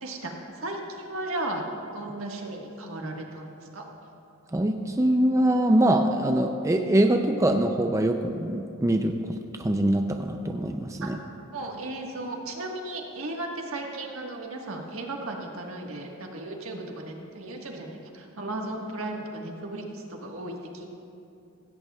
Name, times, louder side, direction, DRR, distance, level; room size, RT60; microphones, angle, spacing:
voice 1, 0.0-1.6 1.9-3.8 11.0-11.1 11.5-20.9, right 2 dB, 75° right, 1 dB, 1.5 m, -35 dB
voice 2, 4.5-11.2, right 1 dB, 15° right, 5 dB, 0.4 m, -23 dB
16.0 x 16.0 x 2.4 m, 2.6 s
head